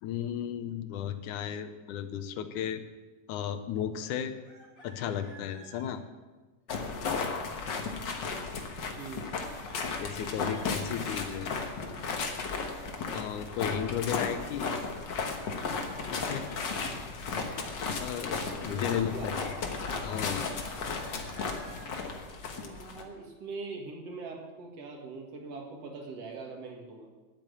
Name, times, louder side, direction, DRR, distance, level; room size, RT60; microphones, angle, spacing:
voice 1, 0.0-2.8 3.3-4.3 4.8-6.0 10.0-11.5 13.1-14.7 16.1-16.5 17.2-17.6 18.0-19.6 20.0-20.5, left 9 dB, 75° left, 10 dB, 2.2 m, -34 dB
Chicken rooster, 4.4-5.9 9.3-10.9 15.4-16.9 20.5-22.0, equal, 25° left, 2.8 m, -51 dB
sound 1, 6.7-23.0, left 4 dB, 55° left, 1.2 m, -35 dB
voice 2, 9.0-9.3 18.7-19.5 22.5-27.1, right 4 dB, 50° right, 1 dB, 2.8 m, -42 dB
10.5 x 9.0 x 8.4 m, 1.3 s
omnidirectional pair, 3.7 m